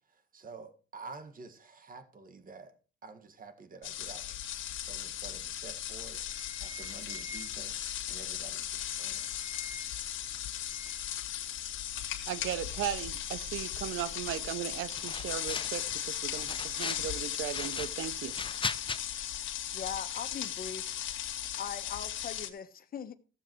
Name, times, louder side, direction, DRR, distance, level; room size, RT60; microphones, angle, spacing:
voice 1, 0.1-2.7 3.0-4.2 4.8-6.2 6.6-9.3 10.2-10.4, right 4 dB, 45° right, 1.8 m, -49 dB
sound 1, 3.8-22.5, left 11 dB, 80° left, 1.6 m, -37 dB
sound 2, 5.6-5.8 6.1-7.8 8.6-10.1 10.3-11.1, left 1 dB, 10° right, 1.9 m, -50 dB
voice 2, 12.3-18.4, right 11 dB, 85° right, 0.8 m, -37 dB
sound 3, 14.9-15.9 16.3-17.1 17.4-19.0, left 5 dB, 25° left, 0.9 m, -38 dB
voice 3, 19.7-20.9 21.5-23.2, left 7 dB, 50° left, 1.1 m, -40 dB
15.0 x 7.2 x 4.6 m
cardioid pair, 90°, 20 cm